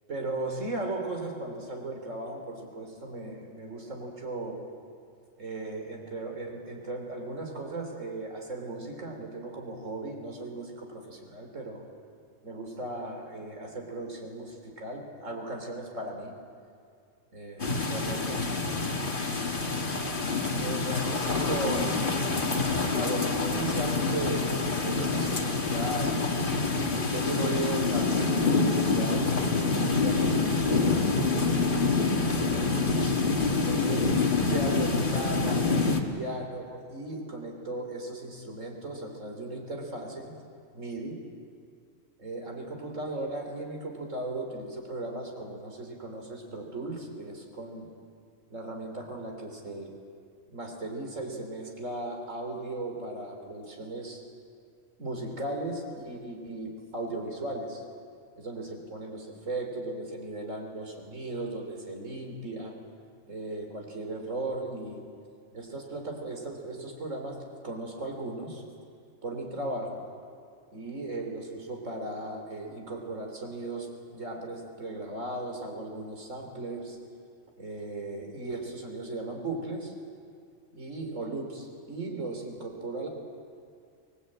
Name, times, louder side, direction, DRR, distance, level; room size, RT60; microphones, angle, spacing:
voice 1, 0.1-4.6 5.4-11.8 12.4-16.3 17.3-18.4 20.6-22.3 23.0-26.4 27.0-32.7 33.5-34.1 34.4-40.3 40.7-41.2 42.2-47.9 48.5-49.9 50.5-54.2 55.0-57.8 58.4-62.7 63.3-65.0 65.5-67.4 67.6-68.6 69.2-70.0 70.7-77.0 77.6-79.9 80.7-83.1, right 2 dB, 75° right, 2 dB, 3.8 m, -37 dB
sound 1, 17.6-36.0, left 3 dB, 40° left, 2.0 m, -26 dB
26.0 x 20.0 x 8.7 m, 2.3 s
omnidirectional pair, 1.3 m